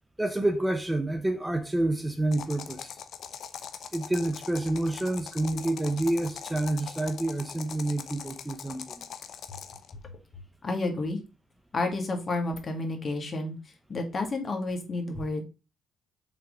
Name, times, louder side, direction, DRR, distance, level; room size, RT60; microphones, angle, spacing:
voice 1, 0.2-3.0 3.9-9.0, right 1 dB, 10° right, 0.9 m, -28 dB
sound 1, 2.3-9.9, left 8 dB, 65° left, 0.8 m, -42 dB
voice 2, 10.6-11.2 11.7-13.6 13.9-15.4, left 2 dB, 40° left, 2.0 m, -30 dB
5.9 x 3.7 x 5.0 m
supercardioid pair, 75°, 0 cm